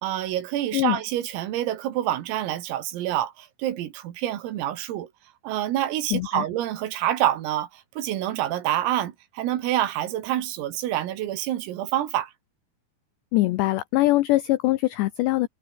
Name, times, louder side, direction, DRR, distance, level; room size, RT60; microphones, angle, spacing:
voice 1, 0.0-5.1 5.4-12.3, right 12 dB, 80° right, 4.7 m, -27 dB
voice 2, 6.1-6.5 13.3-15.5, left 18 dB, 85° left, 2.5 m, -22 dB
omnidirectional pair, 6.0 m